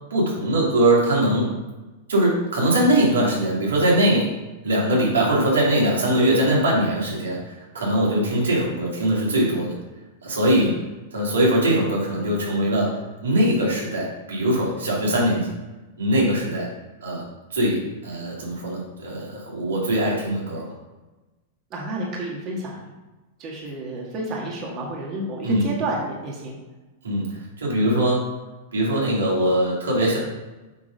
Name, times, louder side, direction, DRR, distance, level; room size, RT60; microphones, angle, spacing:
voice 1, 0.1-1.5 2.1-4.2 4.6-9.7 10.2-10.7 11.1-15.5 16.0-16.7 17.0-17.2 17.5-20.7 25.4-25.7 27.0-28.3 28.7-30.2, right 1 dB, 85° right, -4 dB, 2.7 m, -21 dB
voice 2, 21.7-22.8 23.4-26.6, right 1 dB, 40° right, -3 dB, 1.8 m, -30 dB
8.3 x 3.8 x 5.2 m, 1.1 s
hypercardioid pair, 110°, 0 cm